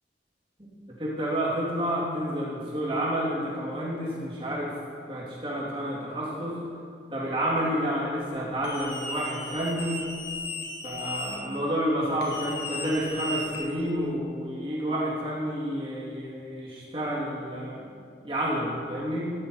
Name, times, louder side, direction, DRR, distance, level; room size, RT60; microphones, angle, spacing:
voice 1, 0.9-4.7 5.1-6.6 7.1-10.0 10.8-17.9 18.2-19.3, equal, 30° right, -6 dB, 3.3 m, -29 dB
sound 1, 8.6-11.4 12.2-14.0, left 2 dB, 65° left, 2.4 m, -36 dB
14.5 x 10.5 x 4.9 m, 2.3 s
head